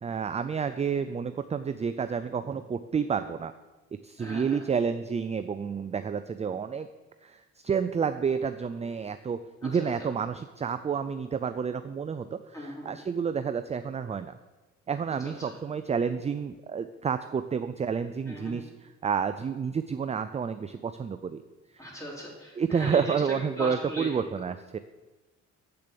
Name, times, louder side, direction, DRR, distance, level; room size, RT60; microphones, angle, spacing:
voice 1, 0.0-3.5 4.0-6.9 7.2-14.4 14.9-21.4 21.7-21.9 22.6-24.8, right 6 dB, 20° right, 10 dB, 0.4 m, -30 dB
voice 2, 4.2-4.6 9.6-9.9 12.5-12.9 15.3-15.5 18.3-18.6 21.8-24.1, equal, 10° left, -4 dB, 4.1 m, -38 dB
8.2 x 6.8 x 6.9 m, 1.2 s
cardioid pair, 90°, 30 cm